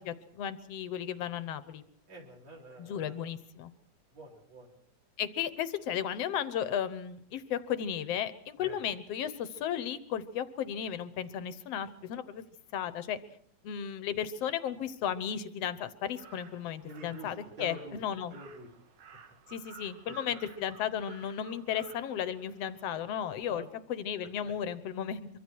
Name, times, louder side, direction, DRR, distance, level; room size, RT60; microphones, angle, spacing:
voice 1, 0.0-1.8 2.8-3.7 5.2-12.4 12.7-13.2 13.6-18.4 19.5-23.6 23.9-25.3, left 9 dB, 65° left, 13 dB, 1.8 m, -34 dB
voice 2, 2.1-3.2 4.1-4.7 8.6-8.8 16.8-18.0 18.3-18.7 20.1-20.4 23.5-23.7 24.4-24.5, right 1 dB, 55° right, -1 dB, 5.2 m, -47 dB
Crow, 16.0-23.4, right 7 dB, 75° right, 3.3 m, -55 dB
24.5 x 24.0 x 4.7 m, 0.62 s
omnidirectional pair, 3.6 m